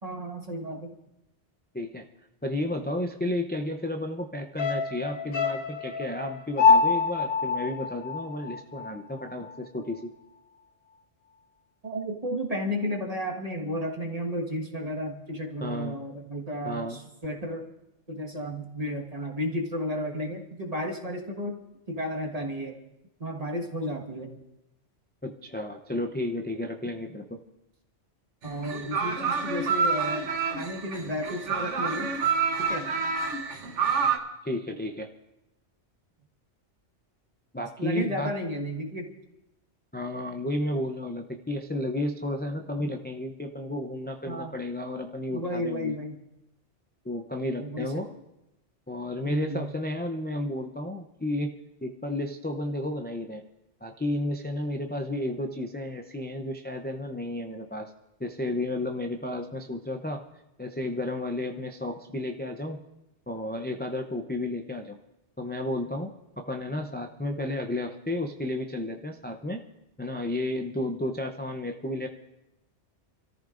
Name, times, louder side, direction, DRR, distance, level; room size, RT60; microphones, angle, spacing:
voice 1, 0.0-0.9 11.8-17.7 18.1-21.5 21.9-22.8 23.2-24.4 28.4-30.3 30.5-32.1 32.6-32.9 37.8-39.1 44.3-44.5 45.3-46.1 47.6-48.0 49.2-49.7, equal, 35° right, 2 dB, 1.6 m, -33 dB
voice 2, 1.7-2.1 2.4-10.1 15.6-16.0 16.6-17.0 25.2-27.4 34.4-35.1 37.5-38.3 39.9-45.9 47.0-48.1 48.9-51.5 51.8-53.4 53.8-57.9 58.2-60.2 60.6-62.8 63.3-65.0 65.4-66.1 66.4-69.6 70.0-72.1, left 1 dB, 10° left, 3 dB, 0.5 m, -32 dB
sound 1, 4.6-9.0 9.3-9.4, left 4 dB, 55° left, 1.2 m, -25 dB
sound 2, 28.5-34.2, right 5 dB, 90° right, 1.4 m, -28 dB
27.5 x 14.0 x 2.6 m, 0.91 s
omnidirectional pair, 1.2 m